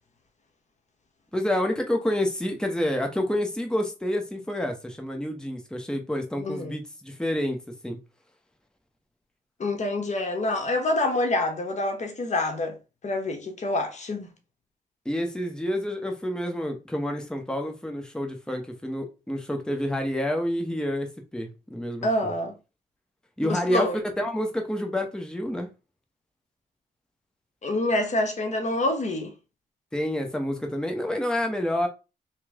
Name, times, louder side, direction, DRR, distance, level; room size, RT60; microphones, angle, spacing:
voice 1, 1.3-8.0 15.0-22.3 23.4-23.9 24.2-25.7 29.9-31.9, left 1 dB, 5° left, 1.0 m, -28 dB
voice 2, 6.4-6.7 9.6-12.8 13.0-14.3 22.0-22.5 23.4-24.0 27.6-29.3, left 2 dB, 45° left, 1.0 m, -27 dB
3.2 x 3.1 x 3.6 m
cardioid pair, 70°, 16 cm